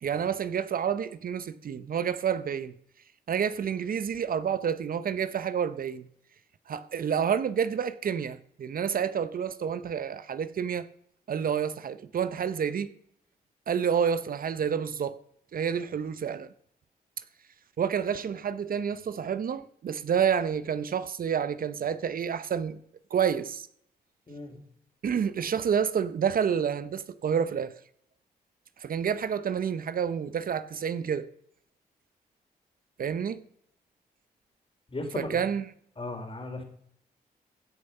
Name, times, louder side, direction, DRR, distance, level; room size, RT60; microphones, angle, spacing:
voice 1, 0.0-2.7 3.3-6.0 6.7-10.9 11.3-12.9 13.7-15.2 15.5-16.5 17.8-22.8 23.1-23.7 25.0-27.7 28.8-31.3 33.0-33.4 35.1-35.6, right 7 dB, 60° right, 0.8 m, -29 dB
voice 2, 24.3-24.6 34.9-35.4 36.0-36.6, left 2 dB, 35° left, 3.4 m, -36 dB
16.0 x 6.5 x 5.5 m
supercardioid pair, 55°, 17 cm